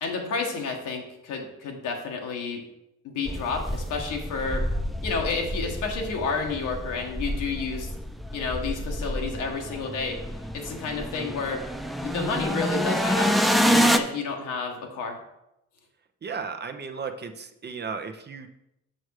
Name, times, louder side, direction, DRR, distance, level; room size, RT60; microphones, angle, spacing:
voice 1, 0.0-2.6 3.0-4.6 5.0-7.9 8.3-10.2 10.5-11.6 12.0-13.3 13.7-15.2, left 4 dB, 85° left, 1 dB, 1.6 m, -30 dB
sound 1, 3.3-14.0, equal, ahead, 0.5 m, -28 dB
voice 2, 16.2-18.5, right 5 dB, 35° right, 6 dB, 0.8 m, -35 dB
6.3 x 6.2 x 4.8 m, 0.85 s
cardioid pair, 90°, 30 cm